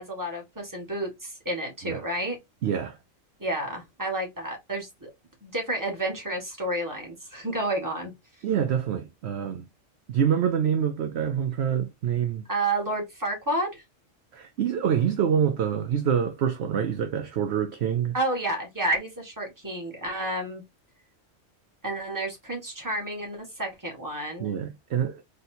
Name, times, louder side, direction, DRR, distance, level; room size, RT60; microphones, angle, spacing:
voice 1, 0.0-2.4 3.4-5.1 5.4-8.1 12.5-13.8 18.1-20.6 21.8-24.5, right 1 dB, 15° right, 1.7 m, -30 dB
voice 2, 2.6-3.0 8.4-9.7 10.1-12.4 14.3-18.1 24.4-25.2, right 8 dB, 65° right, 0.8 m, -26 dB
4.1 x 3.4 x 2.7 m
omnidirectional pair, 1.4 m